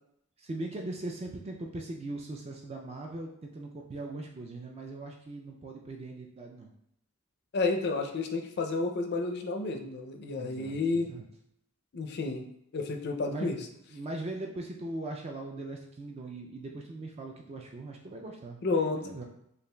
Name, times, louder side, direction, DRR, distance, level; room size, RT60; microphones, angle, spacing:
voice 1, 0.4-6.7 10.4-11.3 13.3-18.6 18.9-19.2, right 2 dB, 30° right, 0 dB, 0.3 m, -40 dB
voice 2, 7.5-11.1 11.9-13.6 18.6-19.0, left 3 dB, 50° left, 4 dB, 0.4 m, -31 dB
6.6 x 2.4 x 2.2 m, 0.75 s
head